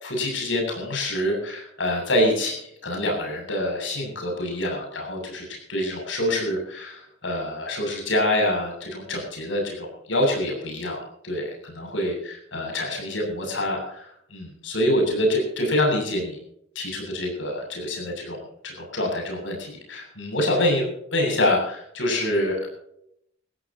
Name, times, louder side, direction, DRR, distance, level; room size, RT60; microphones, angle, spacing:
voice 1, 0.0-2.5 2.8-16.4 16.7-22.7, left 1 dB, 85° left, 1 dB, 7.7 m, -26 dB
22.5 x 15.5 x 3.0 m, 0.73 s
head